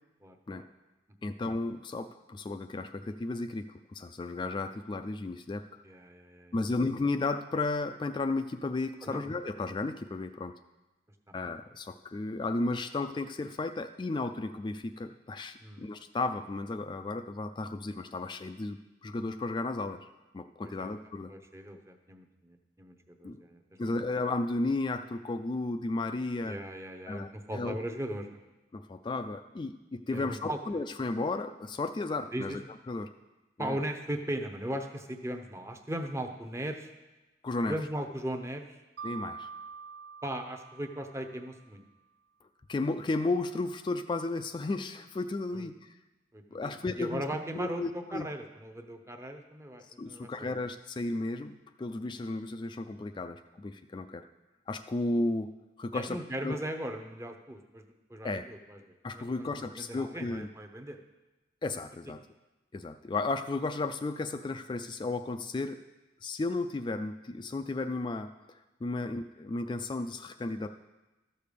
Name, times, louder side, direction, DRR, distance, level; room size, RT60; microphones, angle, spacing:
voice 1, 0.2-0.6 1.2-1.3 5.8-6.5 9.0-9.2 15.6-15.9 20.8-20.9 21.3-23.9 26.4-28.4 30.1-30.6 32.3-32.6 33.6-36.9 37.7-38.6 40.2-41.8 45.5-45.7 46.3-50.5 55.9-58.8 59.2-59.5 59.8-61.0 69.1-69.2, right 1 dB, 15° right, 5 dB, 0.7 m, -38 dB
voice 2, 1.2-3.7 3.9-5.6 6.5-10.5 11.3-20.1 20.3-21.3 23.2-23.4 23.8-26.6 27.1-27.8 28.7-32.6 32.9-33.1 33.6-33.8 37.4-37.8 39.0-39.5 42.7-46.0 46.5-47.2 47.5-48.3 50.0-54.3 54.7-55.5 55.8-56.6 58.2-58.4 59.0-60.5 61.6-62.2 62.7-65.8 66.2-68.3 68.8-70.7, left 2 dB, 25° left, 8 dB, 0.3 m, -34 dB
Mallet percussion, 39.0-41.7, right 6 dB, 65° right, 0.5 m, -45 dB
13.0 x 6.6 x 5.2 m, 1.1 s
head